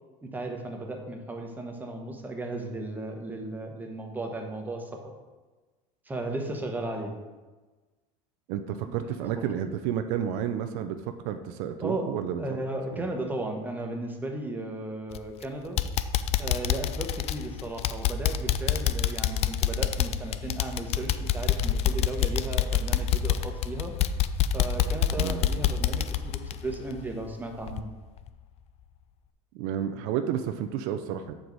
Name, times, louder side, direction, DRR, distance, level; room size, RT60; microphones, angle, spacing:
voice 1, 0.2-5.1 6.1-7.1 8.9-9.5 11.8-12.1 12.4-15.8 16.4-23.9 24.5-27.9, right 2 dB, 10° right, 3 dB, 1.0 m, -35 dB
voice 2, 8.5-12.4 13.0-13.1 25.2-25.4 29.6-31.3, right 9 dB, 70° right, 8 dB, 0.5 m, -31 dB
sound 1, 15.1-15.4 15.8-27.3 27.7-27.8 28.3-28.4, left 10 dB, 40° left, 0.4 m, -27 dB
6.7 x 4.7 x 4.0 m, 1.2 s
supercardioid pair, 110°, 16 cm